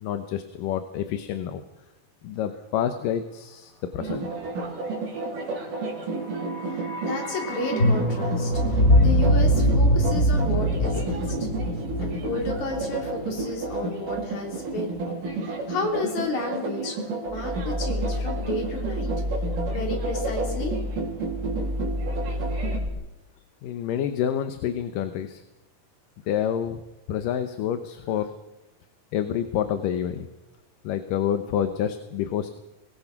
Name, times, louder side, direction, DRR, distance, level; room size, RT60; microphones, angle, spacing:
voice 1, 0.0-1.6 2.2-4.3 22.8-22.9 23.6-25.4 26.3-26.8 27.1-28.3 29.1-30.3 30.8-32.5, left 9 dB, 80° left, 9 dB, 2.7 m, -28 dB
sound 1, 4.0-22.8, right 3 dB, 70° right, 5.2 m, -32 dB
sound 2, 6.1-14.2 14.5-14.6, equal, 25° left, 4.5 m, -23 dB
voice 2, 7.0-11.5 12.0-15.0 15.4-19.1 19.7-20.8, left 3 dB, 60° left, 2 dB, 4.8 m, -32 dB
sound 3, 17.3-22.9, left 1 dB, 25° right, 1.0 m, -30 dB
24.5 x 19.0 x 6.0 m, 0.99 s
omnidirectional pair, 3.9 m